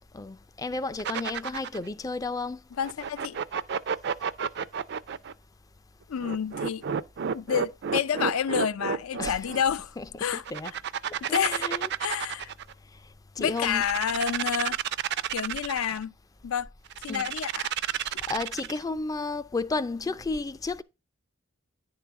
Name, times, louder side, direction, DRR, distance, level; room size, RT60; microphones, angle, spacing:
voice 1, 0.1-2.6 9.2-9.5 10.0-10.1 10.3-10.7 11.3-11.9 13.4-13.8 17.1-17.3 17.8-20.8, left 3 dB, 15° left, 0.3 m, -32 dB
sound 1, 1.0-1.9 2.8-5.3 6.2-9.6 10.4-12.7 13.5-16.0 16.9-18.8, right 7 dB, 55° right, 0.4 m, -31 dB
voice 2, 2.8-3.4 6.1-6.8 7.3-10.4 11.2-11.7 12.0-12.5 13.4-14.8 15.3-16.1 16.4-16.7 17.0-17.7, left 8 dB, 80° left, 0.4 m, -29 dB
10.0 x 3.8 x 5.6 m
head